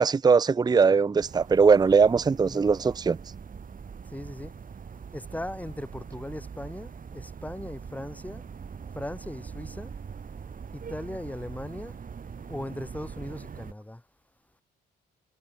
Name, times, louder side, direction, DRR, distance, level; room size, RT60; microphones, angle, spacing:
voice 1, 0.0-3.2, right 5 dB, 20° right, 0.5 m, -20 dB
sound 1, 1.2-13.7, right 6 dB, 45° right, 5.7 m, -42 dB
voice 2, 4.1-4.5 5.1-8.4 8.9-9.9 10.7-12.0 12.5-14.0, left 1 dB, 5° left, 7.3 m, -38 dB
cardioid pair, 90°, 20 cm